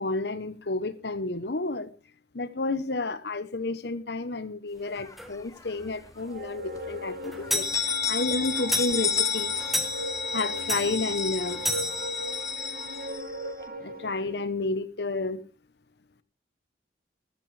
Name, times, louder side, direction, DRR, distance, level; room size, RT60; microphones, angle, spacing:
voice 1, 0.0-1.9 2.3-7.6 8.1-9.7 10.3-11.6 13.8-15.4, left 3 dB, 65° left, 0.9 m, -31 dB
sound 1, 5.0-5.9 6.3-6.4 6.7-6.8 7.4-13.6, left 6 dB, 15° left, 0.8 m, -33 dB
sound 2, 5.2-5.3 5.8-5.9 6.2-6.3 6.6-13.1, left 2 dB, ahead, 1.3 m, -32 dB
sound 3, 6.3-14.4, equal, 50° right, 1.5 m, -39 dB
14.0 x 13.5 x 3.3 m
head